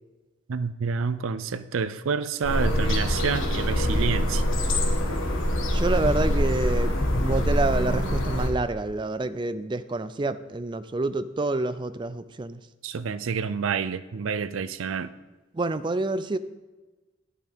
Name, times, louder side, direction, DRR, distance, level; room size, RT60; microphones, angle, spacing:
voice 1, 0.5-4.4 12.8-15.1, right 5 dB, 90° right, 14 dB, 0.5 m, -28 dB
sound 1, 2.4-8.5, equal, 90° left, 1.4 m, -24 dB
voice 2, 5.7-12.6 15.5-16.4, right 2 dB, 25° right, 13 dB, 0.4 m, -28 dB
11.5 x 8.5 x 3.6 m, 1.2 s
head